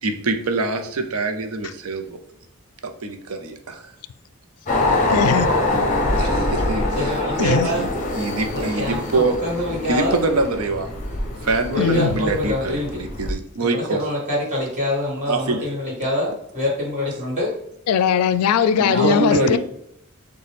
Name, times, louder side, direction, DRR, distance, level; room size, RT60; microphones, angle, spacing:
voice 1, 0.0-2.2 2.8-3.8 6.2-9.4 9.9-10.9 11.4-14.0 15.3-15.7 18.8-19.6, right 3 dB, 80° right, 0.6 m, -24 dB
sound 1, 4.7-13.3, left 2 dB, 35° left, 0.6 m, -24 dB
voice 2, 5.1-5.5 7.4-7.7 11.8-12.2 17.9-19.6, left 7 dB, 90° left, 0.3 m, -19 dB
voice 3, 7.0-7.8 8.5-10.2 11.7-12.9 13.6-17.5 18.9-19.5, left 1 dB, 35° right, 1.8 m, -25 dB
6.5 x 2.2 x 3.4 m
head